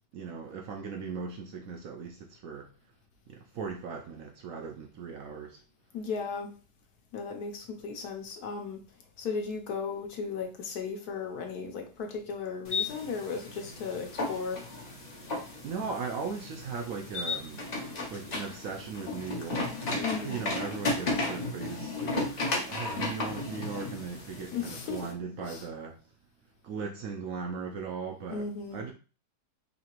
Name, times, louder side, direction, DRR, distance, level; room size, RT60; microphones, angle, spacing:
voice 1, 0.1-2.7 3.3-5.6 15.6-17.7 18.1-26.0 26.6-28.9, right 5 dB, 70° right, 0.8 m, -38 dB
voice 2, 5.9-6.5 7.1-8.8 9.2-14.6 20.0-20.4 24.5-25.1 25.4-25.7 28.3-28.8, left 5 dB, 70° left, 1.2 m, -36 dB
sound 1, 12.6-25.1, left 2 dB, 40° left, 0.6 m, -35 dB
4.1 x 2.8 x 3.0 m
omnidirectional pair, 1.8 m